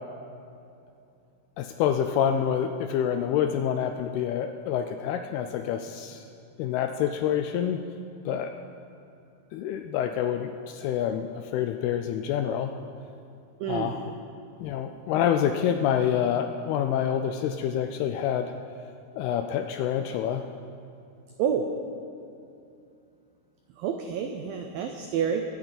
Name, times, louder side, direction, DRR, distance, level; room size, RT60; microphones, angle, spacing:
voice 1, 1.6-6.2 6.6-7.8 8.3-8.5 9.5-12.7 13.7-14.1 14.6-18.5 19.2-20.5, left 9 dB, 85° left, 6 dB, 2.3 m, -27 dB
voice 2, 13.6-13.9 21.4-21.7 23.8-25.4, right 7 dB, 90° right, 5 dB, 2.0 m, -28 dB
23.0 x 8.9 x 4.0 m, 2.6 s
omnidirectional pair, 4.9 m